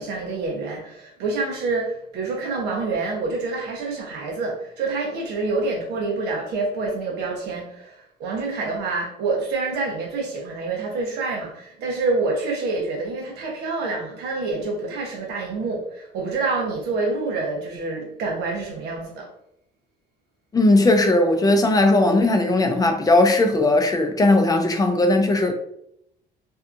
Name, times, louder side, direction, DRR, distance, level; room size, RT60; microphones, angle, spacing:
voice 1, 0.0-19.3, right 3 dB, 90° right, 0.8 m, -27 dB
voice 2, 20.5-25.5, left 2 dB, 20° left, 0.4 m, -18 dB
2.7 x 2.3 x 2.5 m
cardioid pair, 110°, 17 cm